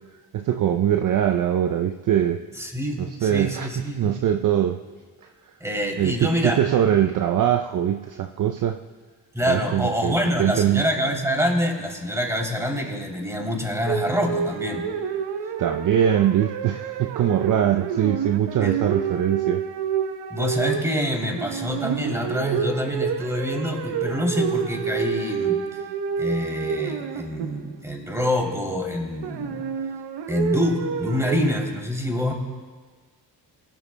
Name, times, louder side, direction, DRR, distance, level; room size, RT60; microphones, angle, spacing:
voice 1, 0.3-2.4 3.0-4.8 6.0-8.8 9.4-10.8 15.6-19.6, right 10 dB, 45° right, 7 dB, 0.5 m, -22 dB
voice 2, 2.5-4.1 5.6-6.6 9.3-14.9 18.6-18.8 20.3-25.8 26.2-29.6 30.3-32.3, equal, 5° right, 0 dB, 3.0 m, -26 dB
sound 1, 13.9-27.8 29.2-31.7, right 7 dB, 65° right, 0.9 m, -28 dB
18.5 x 12.0 x 2.2 m, 1.5 s
supercardioid pair, 55°, 43 cm